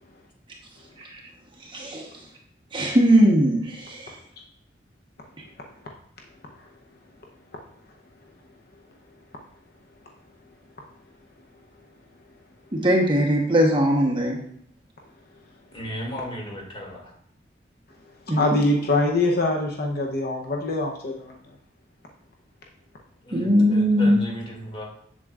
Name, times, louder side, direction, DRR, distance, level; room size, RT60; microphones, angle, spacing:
voice 1, 1.6-2.1 2.7-4.2 12.7-14.4 18.3-18.4 23.3-24.2, equal, 25° right, 0 dB, 1.1 m, -20 dB
voice 2, 15.7-17.1 23.2-24.9, equal, 30° left, -2 dB, 2.4 m, -35 dB
voice 3, 18.4-21.3, left 2 dB, 55° left, 1 dB, 0.8 m, -23 dB
7.6 x 7.6 x 2.5 m, 0.66 s
head